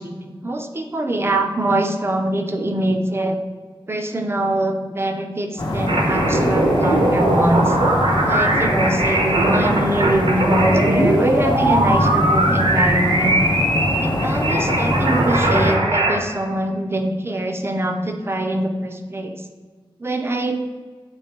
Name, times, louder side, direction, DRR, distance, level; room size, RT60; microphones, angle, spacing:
voice 1, 0.0-3.4 3.9-7.8 8.2-13.3 14.0-19.4 20.0-20.6, right 1 dB, 25° right, 4 dB, 0.6 m, -23 dB
sound 1, 5.6-15.8, left 1 dB, 55° left, 1.0 m, -23 dB
sound 2, 5.9-16.2, right 1 dB, 70° right, 1.1 m, -20 dB
7.2 x 3.3 x 4.4 m, 1.5 s
wide cardioid pair, 115°, 9 cm